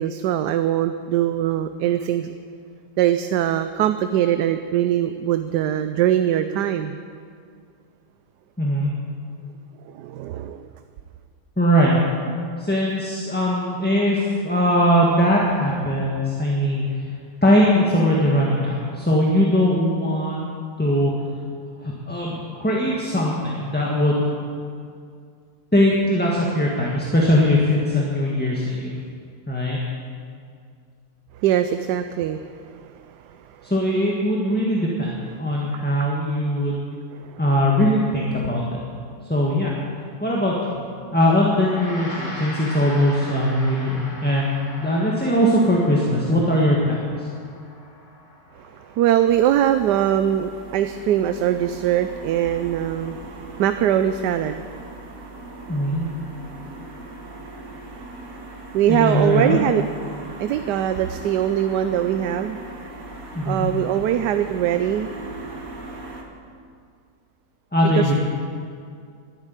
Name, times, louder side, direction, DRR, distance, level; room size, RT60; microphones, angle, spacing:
voice 1, 0.0-2.3 3.0-7.0 9.8-10.7 31.3-33.7 37.2-37.4 48.6-53.2 53.6-54.7 58.7-59.9 60.4-62.6 63.5-65.1 68.0-68.1, right 11 dB, 85° right, 9 dB, 1.2 m, -22 dB
voice 2, 8.6-8.9 11.6-11.9 12.6-17.1 17.4-20.5 20.8-21.1 21.8-24.2 25.7-29.0 29.5-29.8 33.6-36.8 37.4-38.8 39.3-39.7 40.2-40.8 41.1-47.3 55.7-56.1 58.9-59.6 63.3-63.7 67.7-68.2, equal, 5° left, -3 dB, 1.5 m, -20 dB
Gong, 41.5-51.1, left 1 dB, 30° left, 2.3 m, -40 dB
sound 1, 49.3-66.2, right 2 dB, 55° right, 2.1 m, -39 dB
12.0 x 11.0 x 9.2 m, 2.3 s
omnidirectional pair, 1.8 m